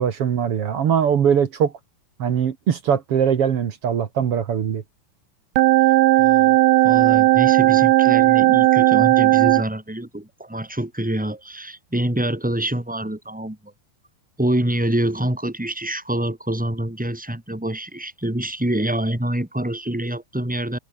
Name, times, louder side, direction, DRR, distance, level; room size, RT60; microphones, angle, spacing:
voice 1, 0.0-1.7 2.2-4.8, right 8 dB, 60° right, 1.5 m, -21 dB
sound 1, 5.6-9.7, right 18 dB, 85° right, 3.1 m, -15 dB
voice 2, 6.2-6.6 6.8-13.7 14.4-20.8, right 1 dB, ahead, 4.6 m, -26 dB
omnidirectional pair, 5.0 m